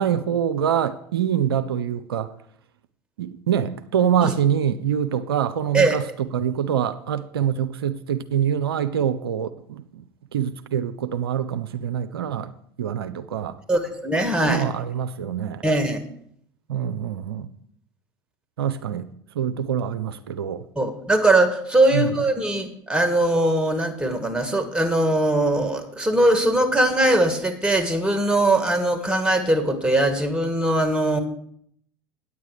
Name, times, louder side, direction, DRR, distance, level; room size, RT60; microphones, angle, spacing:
voice 1, 0.0-2.3 3.2-6.0 6.3-10.0 10.3-12.5 12.8-13.6 14.4-15.6 16.7-17.5 18.6-19.1 19.4-20.6 21.9-22.1, right 9 dB, 85° right, 0.5 m, -25 dB
voice 2, 13.7-14.7 15.6-16.0 20.7-31.2, right 1 dB, 5° right, 1.8 m, -21 dB
9.6 x 8.1 x 4.9 m
hypercardioid pair, 75°, 12 cm